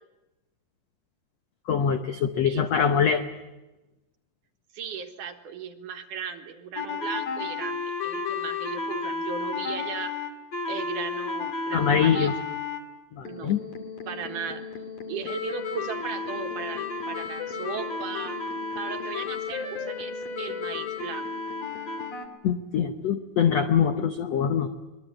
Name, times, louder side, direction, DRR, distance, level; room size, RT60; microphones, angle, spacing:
voice 1, 1.7-3.2 11.7-12.3 13.1-13.6 22.4-24.7, left 7 dB, 75° left, 7 dB, 1.5 m, -23 dB
voice 2, 2.4-3.1 4.7-10.2 10.7-12.3 13.2-13.6 14.1-14.6 15.1-18.4 18.8-21.3, right 7 dB, 65° right, 5 dB, 2.6 m, -37 dB
sound 1, 6.8-12.8 13.3-22.3, left 4 dB, 45° left, 3.2 m, -33 dB
24.5 x 21.0 x 8.8 m, 1.1 s
omnidirectional pair, 4.4 m